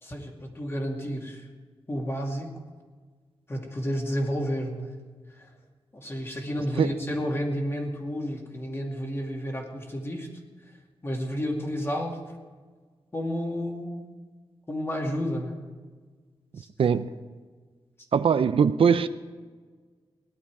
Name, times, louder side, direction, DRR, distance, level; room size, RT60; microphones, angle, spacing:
voice 1, 0.0-1.5 1.9-2.5 3.5-4.9 5.3-5.5 5.9-10.3 11.0-12.2 13.1-14.1 14.7-15.6 16.6-16.7, equal, 25° left, 1 dB, 2.4 m, -31 dB
voice 2, 16.5-17.1 18.1-19.1, right 7 dB, 70° right, 12 dB, 0.6 m, -22 dB
18.0 x 11.5 x 4.8 m, 1.5 s
wide cardioid pair, 115°, 10 cm